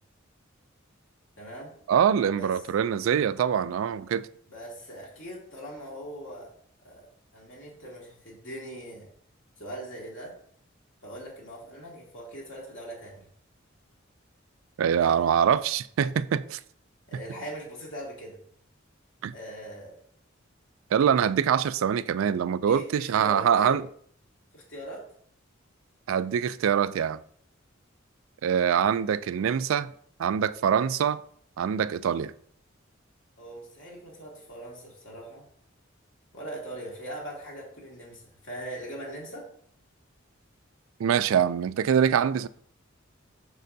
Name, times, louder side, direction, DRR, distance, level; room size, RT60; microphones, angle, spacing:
voice 1, 1.4-1.8 2.3-2.6 4.5-6.5 6.8-9.1 9.6-10.4 11.0-13.3 15.0-15.3 17.1-18.4 19.3-20.0 22.7-23.8 24.5-25.1 33.4-35.5 36.3-39.5, right 1 dB, 70° left, 2.3 m, -41 dB
voice 2, 1.9-4.3 14.8-16.6 19.2-19.3 20.9-23.8 26.1-27.2 28.4-29.9 30.2-31.2 31.6-32.3 41.0-42.5, right 8 dB, 85° right, 0.3 m, -24 dB
6.6 x 6.3 x 2.7 m
head